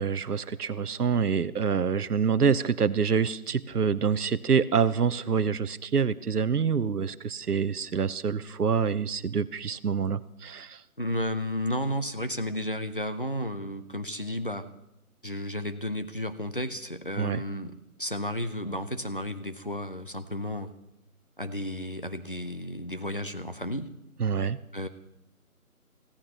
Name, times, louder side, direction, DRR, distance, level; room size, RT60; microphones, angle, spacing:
voice 1, 0.0-10.8 17.2-17.4 24.2-24.6, right 6 dB, 90° right, 15 dB, 0.8 m, -26 dB
voice 2, 11.0-14.7 15.2-20.7 21.4-23.9 24.7-24.9, left 1 dB, 35° left, 10 dB, 0.7 m, -33 dB
24.0 x 16.0 x 2.9 m, 0.87 s
figure-of-eight pair, 180°, 44 cm